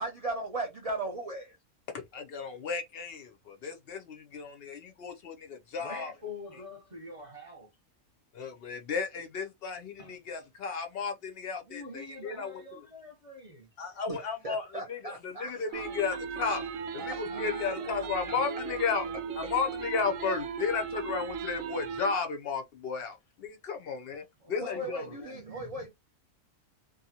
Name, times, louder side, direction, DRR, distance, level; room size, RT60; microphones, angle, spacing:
voice 1, 0.0-1.6 14.1-14.2 14.4-15.8 17.0-17.7 24.6-25.9, right 2 dB, 60° right, 0.4 m, -37 dB
voice 2, 1.9-6.1 8.3-12.8 13.8-16.6 16.9-19.1 19.4-25.0, left 5 dB, 60° left, 0.6 m, -34 dB
voice 3, 5.8-7.7 10.0-10.2 11.6-13.7 17.2-18.8 19.0-19.5 24.4-25.7, left 2 dB, 30° right, 0.8 m, -46 dB
sound 1, 15.7-22.1, right 6 dB, 80° right, 1.0 m, -37 dB
2.6 x 2.3 x 2.7 m
omnidirectional pair, 1.4 m